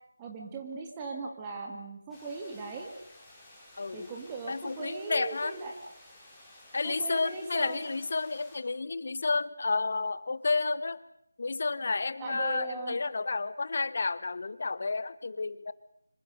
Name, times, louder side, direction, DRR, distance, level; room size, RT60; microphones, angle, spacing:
voice 1, 0.2-2.9 3.9-5.7 6.8-7.9 12.2-13.0, right 4 dB, 15° right, 1 dB, 2.2 m, -39 dB
sound 1, 2.1-8.6, left 1 dB, ahead, 4.7 m, -54 dB
voice 2, 3.8-4.1 4.5-5.6 6.7-11.0 11.4-15.7, left 3 dB, 45° left, 17 dB, 1.1 m, -31 dB
26.0 x 24.0 x 6.6 m, 0.73 s
figure-of-eight pair, 160°, 0 cm